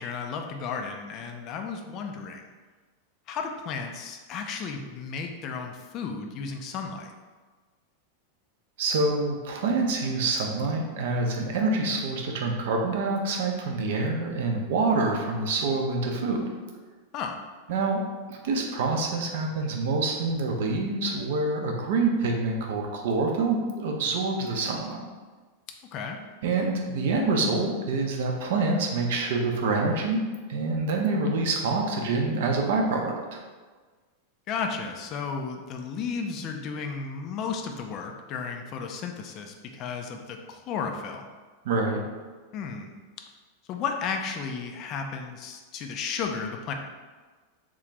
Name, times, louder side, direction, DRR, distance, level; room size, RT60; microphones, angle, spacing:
voice 1, 0.0-2.4 3.3-7.1 17.1-17.4 25.9-26.2 34.5-41.3 42.5-42.9 43.7-46.7, left 5 dB, 35° left, 3 dB, 0.4 m, -33 dB
voice 2, 8.8-16.4 17.7-18.0 18.3-25.0 26.4-30.2 30.5-33.1 41.6-42.0, right 3 dB, 55° right, 2 dB, 0.5 m, -26 dB
3.7 x 2.4 x 3.2 m, 1.4 s
figure-of-eight pair, 90°, 0 cm